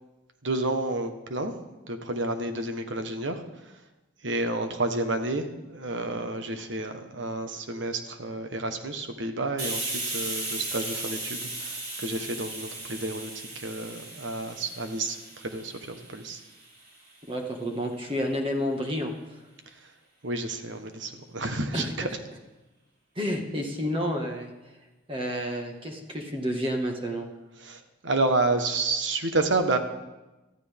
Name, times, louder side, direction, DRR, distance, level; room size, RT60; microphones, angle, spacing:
voice 1, 0.4-1.6 1.9-3.7 4.2-16.4 19.8-19.9 20.2-22.1 27.6-29.8, right 2 dB, 75° right, 7 dB, 1.4 m, -30 dB
Hiss, 9.6-17.0, right 2 dB, 50° right, 4.6 m, -36 dB
voice 2, 17.3-19.4 21.7-21.9 23.2-24.5 25.1-27.3, equal, 30° right, 2 dB, 1.9 m, -30 dB
18.5 x 14.0 x 3.7 m, 1.1 s
head